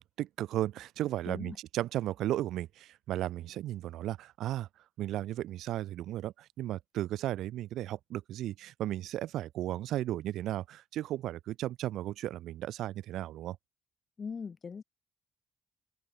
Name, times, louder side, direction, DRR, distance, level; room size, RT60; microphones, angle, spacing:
voice 1, 0.0-4.7 5.0-13.6, right 13 dB, 85° right, 0.4 m, -35 dB
voice 2, 1.3-1.6 14.2-14.8, left 5 dB, 40° left, 0.5 m, -40 dB
open air
cardioid pair, 90°, 0 cm